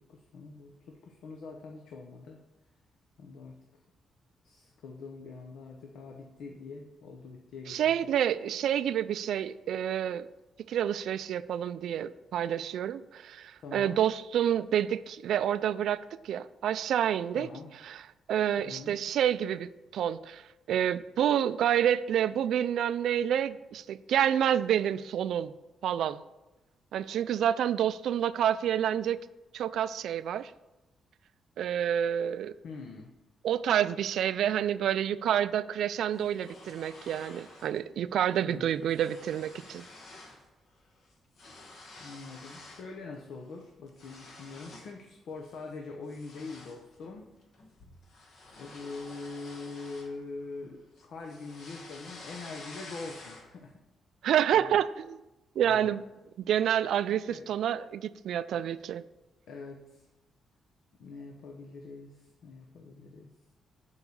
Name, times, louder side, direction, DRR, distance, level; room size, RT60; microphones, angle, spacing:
voice 1, 0.1-2.4 3.2-3.5 4.4-7.9 13.6-14.0 17.3-17.7 18.6-19.0 32.6-33.1 38.4-38.9 42.0-47.3 48.6-53.8 54.5-54.8 55.5-56.0 57.3-57.4 59.5-60.0 61.0-63.3, left 3 dB, 65° left, 2 dB, 0.8 m, -44 dB
voice 2, 7.7-10.3 10.7-17.5 17.8-18.0 18.3-20.4 20.7-25.5 25.8-26.2 26.9-29.2 29.5-30.5 31.6-32.5 33.4-39.8 54.2-55.2 55.6-56.0 56.5-59.0, right 10 dB, 70° right, 15 dB, 0.3 m, -28 dB
sound 1, 36.1-37.8 38.1-38.4 38.6-40.5 40.7-42.9 43.3-45.0 45.4-45.7 46.1-50.6 51.0-53.7, left 2 dB, 45° left, 1.3 m, -50 dB
7.1 x 4.8 x 6.9 m, 1.0 s
cardioid pair, 175°, 0 cm